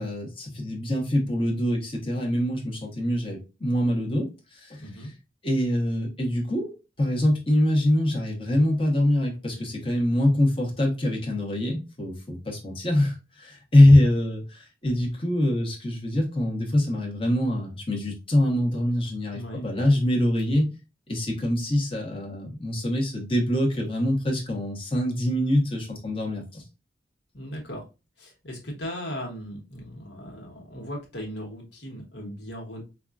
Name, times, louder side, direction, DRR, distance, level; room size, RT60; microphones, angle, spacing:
voice 1, 0.0-4.9 5.4-6.7 7.0-20.7 21.1-26.6, left 1 dB, 30° left, -1 dB, 1.0 m, -24 dB
voice 2, 4.8-5.1 19.3-19.6 20.6-20.7 27.3-27.8 28.2-32.8, equal, 70° left, 0 dB, 1.3 m, -37 dB
5.2 x 2.4 x 2.4 m, 0.28 s
head